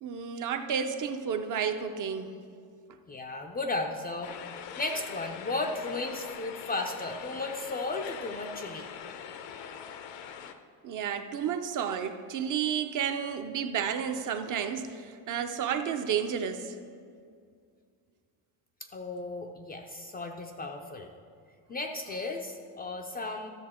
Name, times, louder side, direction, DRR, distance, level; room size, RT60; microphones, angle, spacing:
voice 1, 0.0-2.3 10.8-16.8, right 7 dB, 45° right, 7 dB, 0.6 m, -31 dB
voice 2, 3.1-4.4 4.8-8.9 18.8-21.1 21.7-23.5, left 2 dB, 20° left, 3 dB, 0.4 m, -35 dB
sound 1, 4.2-10.5, left 8 dB, 70° left, 0.8 m, -43 dB
13.5 x 6.7 x 4.3 m, 2.2 s
cardioid pair, 145°, 45 cm